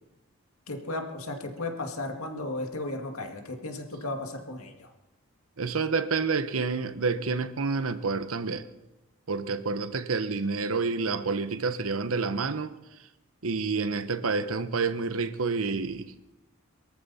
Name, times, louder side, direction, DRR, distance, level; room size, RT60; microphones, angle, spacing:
voice 1, 0.7-4.9, left 2 dB, 85° left, 2.2 m, -35 dB
voice 2, 5.6-8.6 9.3-12.7 13.4-16.1, right 4 dB, 75° right, 0.9 m, -28 dB
23.5 x 14.0 x 4.3 m
head